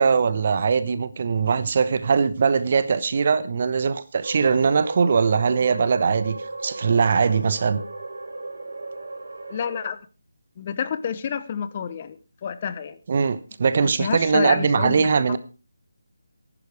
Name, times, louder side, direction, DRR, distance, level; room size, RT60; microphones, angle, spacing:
voice 1, 0.0-6.4 6.6-7.8 13.1-15.4, right 5 dB, 40° right, 15 dB, 1.1 m, -21 dB
sound 1, 4.2-9.9, right 2 dB, 75° right, 4.2 m, -35 dB
voice 2, 9.5-10.0 10.6-13.0 13.8-15.4, left 7 dB, 30° left, 13 dB, 1.0 m, -29 dB
14.5 x 11.0 x 4.8 m, 0.33 s
figure-of-eight pair, 160°, 0 cm